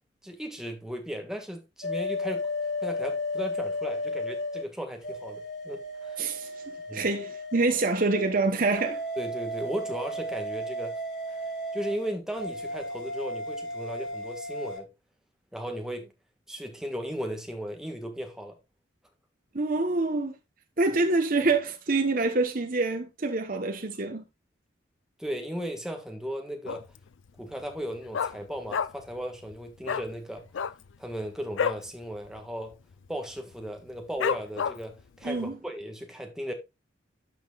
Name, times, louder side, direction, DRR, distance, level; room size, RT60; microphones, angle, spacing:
voice 1, 0.2-2.5 2.8-6.2 6.9-7.1 9.2-11.0 11.7-14.9 15.5-16.1 16.5-18.6 25.2-26.9 27.4-30.4 31.0-32.7 33.1-36.5, equal, 5° right, 1.6 m, -36 dB
sound 1, 1.8-4.6 5.0-8.3 8.7-14.8, left 1 dB, 60° left, 4.5 m, -34 dB
voice 2, 6.2-6.5 6.9-9.0 19.5-20.3 20.8-24.2 35.2-35.6, right 3 dB, 45° right, 1.1 m, -26 dB
Dog, 26.7-27.1 27.4-27.5 27.7-29.2 29.4-29.6 29.8-30.1 30.5-31.9 32.2-32.4 32.7-33.1 33.5-33.6 34.2-35.0 35.5-35.6, left 7 dB, 85° left, 0.4 m, -30 dB
12.5 x 6.0 x 2.4 m
head